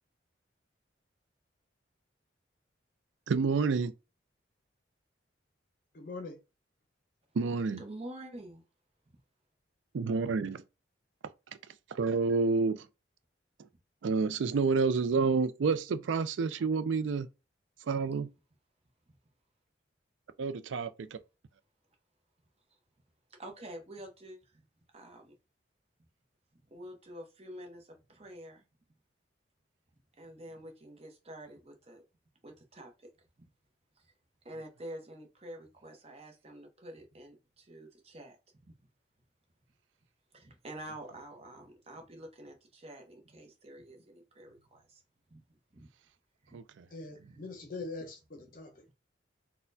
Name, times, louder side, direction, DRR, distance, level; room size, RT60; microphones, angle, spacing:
voice 1, 3.3-3.9 7.3-7.8 9.9-10.6 11.5-12.9 14.0-17.3 17.8-18.3 20.4-21.2 46.5-46.9, right 4 dB, 90° right, 0.4 m, -29 dB
voice 2, 5.9-6.4 46.9-48.9, left 3 dB, 50° left, 0.6 m, -43 dB
voice 3, 7.8-8.6 9.1-9.2 23.3-24.6 24.9-25.3 26.5-28.6 30.1-32.0 32.4-33.1 33.4-33.5 34.0-34.1 34.4-38.4 38.6-38.7 40.3-45.0 45.3-45.4 45.7-45.9 46.4-46.6, right 1 dB, 35° right, 0.9 m, -48 dB
4.1 x 2.2 x 2.6 m
head